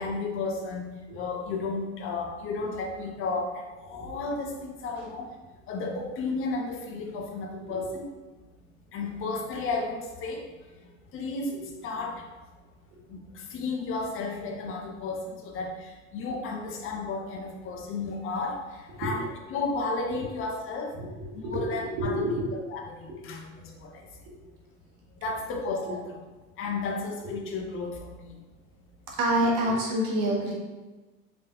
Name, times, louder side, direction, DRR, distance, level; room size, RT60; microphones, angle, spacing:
voice 1, 0.0-5.3 5.7-8.1 8.9-10.4 11.1-12.2 13.1-13.2 13.5-15.2 15.4-15.7 16.1-18.6 19.0-20.9 21.3-22.2 22.5-23.9 25.2-26.0 26.6-28.3, left 3 dB, 30° left, 2 dB, 0.8 m, -33 dB
voice 2, 21.4-22.4 23.0-23.2 25.9-26.0 29.2-30.5, right 1 dB, 45° right, -2 dB, 1.4 m, -28 dB
5.1 x 3.3 x 2.9 m, 1.2 s
figure-of-eight pair, 75°, 42 cm